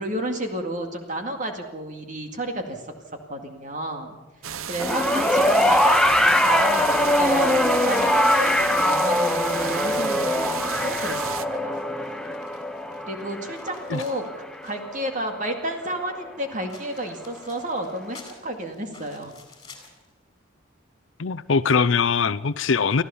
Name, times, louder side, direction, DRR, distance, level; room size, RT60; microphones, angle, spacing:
voice 1, 0.0-2.8 3.3-4.2 4.7-11.8 13.1-14.3 14.6-19.3, right 1 dB, 40° right, 4 dB, 2.1 m, -31 dB
sound 1, 4.4-11.4, right 8 dB, 90° right, 0.9 m, -33 dB
sound 2, 4.7-14.9 16.7-20.1, left 4 dB, 20° left, 4.4 m, -49 dB
sound 3, 4.8-15.2 16.3-16.4, left 1 dB, 5° left, 0.9 m, -22 dB
voice 2, 21.2-23.0, left 5 dB, 70° left, 11 dB, 0.6 m, -22 dB
25.0 x 14.5 x 7.1 m, 1.1 s
head